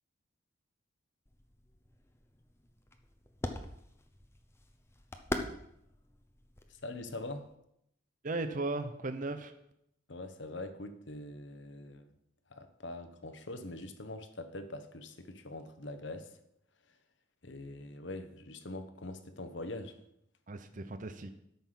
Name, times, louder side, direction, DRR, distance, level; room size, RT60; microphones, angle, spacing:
sound 1, 1.3-7.6, left 1 dB, 15° left, 0.8 m, -43 dB
voice 1, 6.7-7.5 10.1-12.2 12.5-16.4 16.9-17.0 17.4-20.0, left 2 dB, 70° left, 9 dB, 1.1 m, -43 dB
voice 2, 8.2-9.5 20.5-21.3, right 2 dB, 45° right, 9 dB, 0.7 m, -36 dB
13.0 x 5.8 x 5.9 m, 0.77 s
head